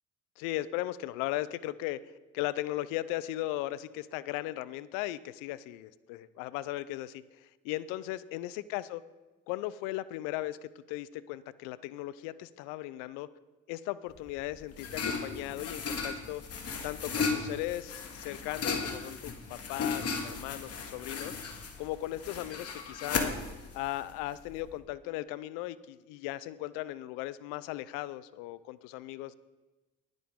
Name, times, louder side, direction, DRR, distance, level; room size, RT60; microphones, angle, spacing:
voice 1, 0.4-2.0 2.3-9.0 9.5-13.3 13.7-16.4 16.8-21.4 21.8-23.3 23.7-29.4, left 15 dB, 80° left, 17 dB, 0.6 m, -37 dB
sound 1, 14.1-24.7, left 5 dB, 45° left, 2.0 m, -36 dB
19.0 x 9.2 x 3.7 m, 1.2 s
hypercardioid pair, 60°, 32 cm